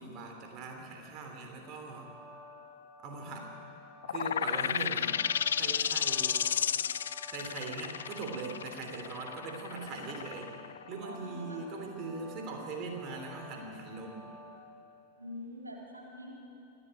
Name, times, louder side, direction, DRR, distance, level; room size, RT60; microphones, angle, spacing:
voice 1, 0.0-2.1 3.0-3.5 4.1-5.2 5.6-6.4 7.3-10.5 10.9-14.3, right 3 dB, 40° right, 2 dB, 3.2 m, -41 dB
sound 1, 1.6-14.6, left 1 dB, 5° right, 3.7 m, -52 dB
sound 2, 4.0-11.4, left 8 dB, 65° left, 0.4 m, -32 dB
voice 2, 4.7-5.1 11.0-11.6 12.0-12.2 15.2-16.3, left 1 dB, 80° right, -2 dB, 3.6 m, -46 dB
25.5 x 12.0 x 8.9 m, 2.7 s
figure-of-eight pair, 90°, 0 cm